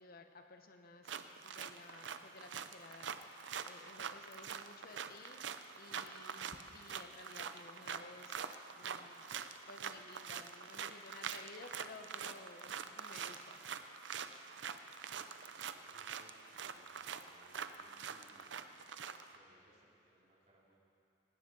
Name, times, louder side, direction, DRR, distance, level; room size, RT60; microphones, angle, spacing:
voice 1, 0.0-9.3 9.7-13.6, left 3 dB, 55° left, 6 dB, 0.9 m, -55 dB
sound 1, 1.1-19.4, right 7 dB, 70° right, 0.6 m, -45 dB
voice 2, 15.4-18.5 19.3-20.8, right 1 dB, 40° right, -4 dB, 2.9 m, -68 dB
18.0 x 16.0 x 3.9 m, 2.6 s
head